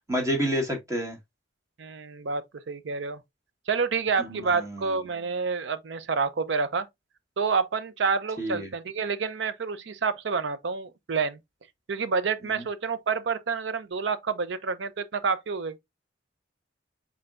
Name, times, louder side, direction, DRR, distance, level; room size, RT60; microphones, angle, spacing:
voice 1, 0.1-1.2 4.2-5.0 8.4-8.7 12.4-12.6, equal, 15° right, 1.4 m, -29 dB
voice 2, 1.8-3.2 3.7-6.9 7.4-11.4 11.9-15.8, right 5 dB, 70° right, 0.5 m, -28 dB
4.3 x 4.3 x 2.4 m
head